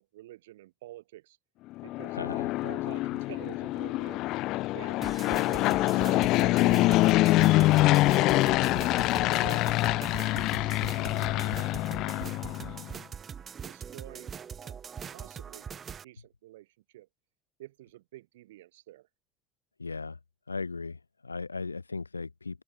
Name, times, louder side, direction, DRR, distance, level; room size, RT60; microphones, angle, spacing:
voice 1, 0.0-1.4 1.8-4.3 4.7-5.1 5.4-6.3 6.6-9.8 10.4-12.4 13.6-14.4 14.6-15.7 16.0-17.1 17.6-19.1, right 16 dB, 65° right, 7.2 m, -50 dB
Fixed-wing aircraft airplane, 1.8-12.9, left 18 dB, 50° left, 0.4 m, -25 dB
voice 2, 2.1-2.5 19.8-20.2 20.5-22.6, left 4 dB, 85° left, 1.1 m, -37 dB
sound 1, 5.0-16.0, right 7 dB, 30° right, 0.4 m, -42 dB
open air
figure-of-eight pair, 70°, 0 cm